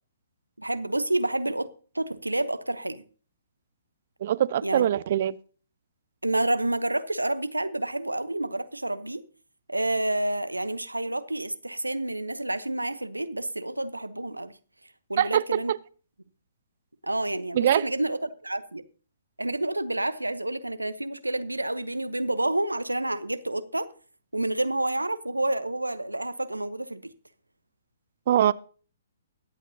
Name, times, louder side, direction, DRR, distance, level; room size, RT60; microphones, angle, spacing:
voice 1, 0.6-1.7 1.9-3.0 4.6-4.9 6.2-9.2 9.7-14.5 15.1-15.7 17.0-18.8 19.4-23.9 24.3-27.0, right 1 dB, 85° right, 1.0 m, -29 dB
voice 2, 4.2-5.4 15.2-15.8 17.5-17.9 28.3-28.5, right 10 dB, 45° right, 0.5 m, -23 dB
22.5 x 8.3 x 2.8 m
figure-of-eight pair, 125°, 0 cm